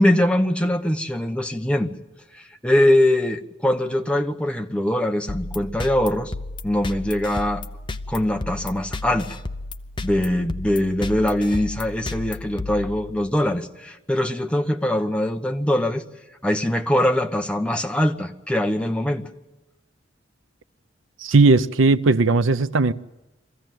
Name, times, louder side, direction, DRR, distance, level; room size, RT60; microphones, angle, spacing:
voice 1, 0.0-1.9 2.3-6.3 6.6-7.6 8.1-9.3 10.0-16.0 16.4-19.3, left 1 dB, 5° left, 1.0 m, -22 dB
sound 1, 5.3-13.5, left 2 dB, 25° left, 0.7 m, -33 dB
voice 2, 21.2-22.9, right 3 dB, 85° right, 0.7 m, -17 dB
23.5 x 15.0 x 9.2 m
head